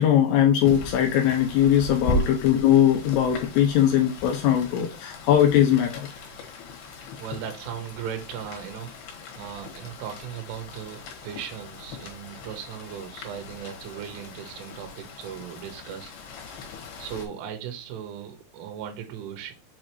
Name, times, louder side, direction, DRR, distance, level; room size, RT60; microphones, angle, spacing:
voice 1, 0.0-6.1, left 10 dB, 85° left, 2.4 m, -20 dB
Rain, 0.6-17.3, left 2 dB, 65° left, 3.1 m, -38 dB
voice 2, 7.2-16.6 17.0-19.5, right 9 dB, 85° right, 3.6 m, -38 dB
7.4 x 4.3 x 3.0 m
omnidirectional pair, 5.5 m